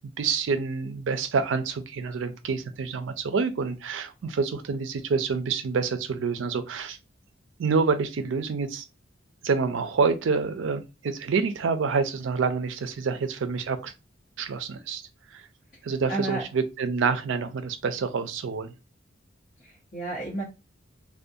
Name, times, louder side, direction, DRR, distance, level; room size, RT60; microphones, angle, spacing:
voice 1, 0.2-7.0 7.6-8.8 9.4-13.9 14.4-15.0 15.3-15.5 15.8-18.7, right 5 dB, 75° right, 0.4 m, -27 dB
voice 2, 16.1-16.4 19.6-20.4, right 2 dB, 45° left, 0.9 m, -32 dB
2.5 x 2.2 x 2.6 m
head